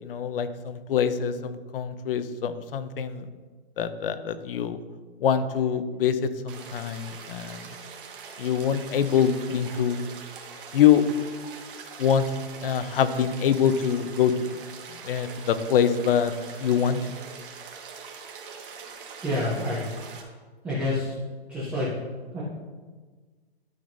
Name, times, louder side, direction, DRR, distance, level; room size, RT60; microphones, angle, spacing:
voice 1, 0.0-3.3 3.8-4.8 5.2-7.6 8.4-10.1 10.7-11.1 12.0-12.3 12.6-14.3 15.0-16.3 16.6-17.0, left 8 dB, 60° left, 12 dB, 0.7 m, -24 dB
sound 1, 6.5-20.2, right 5 dB, 55° right, 1.5 m, -43 dB
voice 2, 19.2-19.8 20.6-21.2 21.5-21.9 22.2-22.4, left 1 dB, 5° right, -8 dB, 0.5 m, -28 dB
12.0 x 5.6 x 2.6 m, 1.4 s
hypercardioid pair, 165°, 32 cm